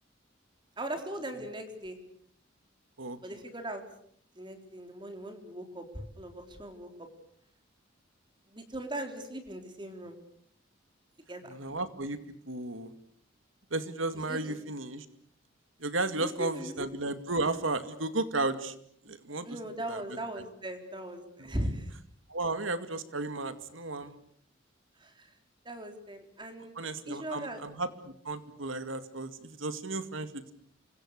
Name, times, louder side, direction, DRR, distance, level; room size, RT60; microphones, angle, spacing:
voice 1, 0.8-2.0 3.2-3.8 4.4-7.1 8.5-10.2 11.3-11.5 14.3-14.6 16.2-16.9 19.4-21.9 25.0-25.3 25.6-26.7 27.1-27.6, right 1 dB, 25° right, 6 dB, 4.0 m, -39 dB
voice 2, 11.5-12.2 12.5-12.9 13.7-15.1 15.8-18.7 19.0-19.5 19.9-20.0 21.4-21.5 22.3-24.1 26.8-30.4, right 2 dB, 90° right, 10 dB, 2.3 m, -34 dB
29.0 x 25.0 x 6.6 m, 0.63 s
head